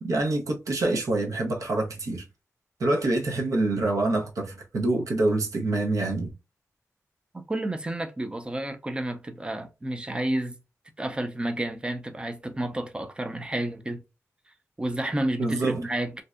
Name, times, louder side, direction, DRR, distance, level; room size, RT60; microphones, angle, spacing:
voice 1, 0.0-2.3 2.8-6.3 15.4-15.8, right 2 dB, 80° right, 0.6 m, -26 dB
voice 2, 7.3-10.6 11.0-14.0 14.8-16.2, right 1 dB, 20° right, 0.4 m, -30 dB
2.6 x 2.1 x 2.3 m
wide cardioid pair, 130°, 6 cm